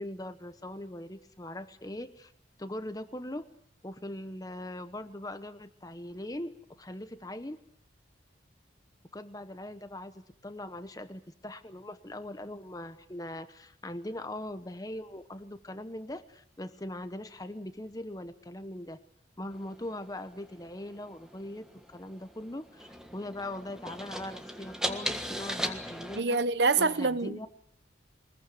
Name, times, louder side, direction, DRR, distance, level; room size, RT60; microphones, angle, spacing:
voice 1, 0.0-2.3 2.6-3.5 3.8-7.6 9.1-19.0 19.4-21.6 21.9-26.4 26.8-27.5, left 1 dB, 20° left, 1.0 m, -41 dB
sound 1, 19.5-26.2, equal, 5° right, 1.6 m, -39 dB
voice 2, 26.2-27.5, right 4 dB, 60° right, 0.9 m, -26 dB
23.5 x 21.0 x 8.2 m
head